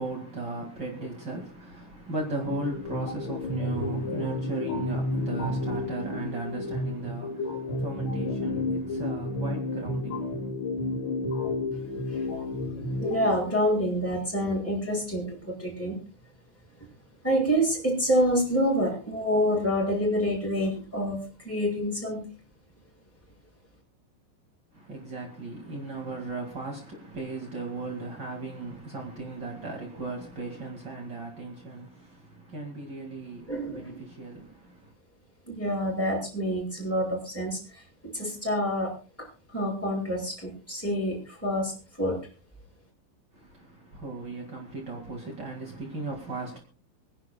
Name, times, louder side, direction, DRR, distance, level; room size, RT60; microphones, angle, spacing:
voice 1, 0.0-10.5 24.7-34.9 43.3-46.6, right 2 dB, 60° right, 1.1 m, -37 dB
sound 1, 2.4-13.5, left 2 dB, 45° left, 3.9 m, -31 dB
voice 2, 11.9-12.6 13.0-16.0 17.2-21.2 21.4-22.2 33.5-34.0 35.5-42.2, equal, 5° left, 5.6 m, -27 dB
26.0 x 11.0 x 2.3 m
omnidirectional pair, 5.9 m